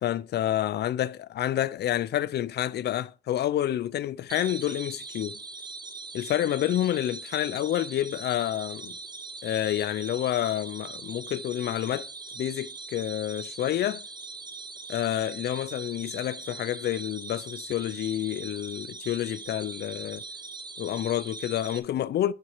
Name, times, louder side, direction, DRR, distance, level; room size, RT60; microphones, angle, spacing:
voice 1, 0.0-5.4 6.1-9.0 9.4-12.1 12.4-14.0 14.9-20.2 20.8-22.3, left 12 dB, 60° left, 0.5 m, -29 dB
sound 1, 4.3-21.8, right 4 dB, 25° right, 0.9 m, -41 dB
10.5 x 4.3 x 4.8 m
cardioid pair, 115°, 19 cm